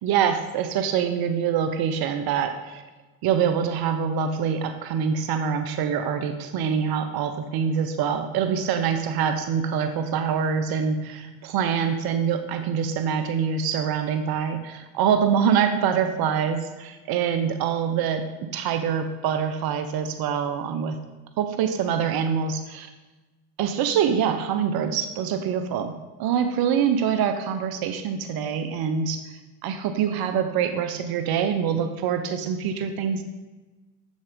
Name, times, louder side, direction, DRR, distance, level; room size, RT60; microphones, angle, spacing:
voice 1, 0.0-2.8 3.2-21.0 21.4-22.9 23.6-25.9 26.2-29.2 29.6-33.2, right 7 dB, 55° right, 8 dB, 0.8 m, -25 dB
8.0 x 6.3 x 3.6 m, 1.2 s
supercardioid pair, 85°, 43 cm